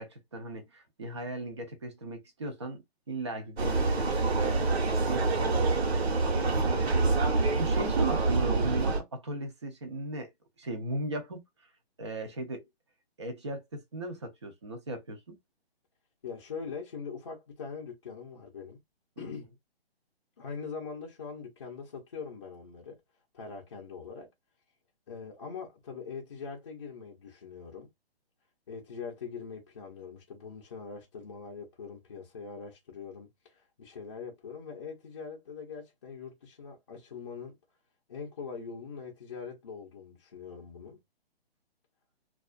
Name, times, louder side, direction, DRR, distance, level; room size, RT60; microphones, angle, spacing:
voice 1, 0.0-4.6 5.0-10.3 10.6-11.4 12.0-12.7 13.2-15.4, right 2 dB, 30° right, 0.5 m, -37 dB
Vehicle, 3.6-9.0, right 3 dB, 75° right, 1.0 m, -26 dB
voice 2, 16.2-18.8 19.2-19.5 20.4-23.0 23.3-24.3 25.1-27.9 28.7-37.5 38.1-41.0, left 5 dB, 30° left, 0.6 m, -42 dB
2.3 x 2.3 x 2.4 m
hypercardioid pair, 160°, 32 cm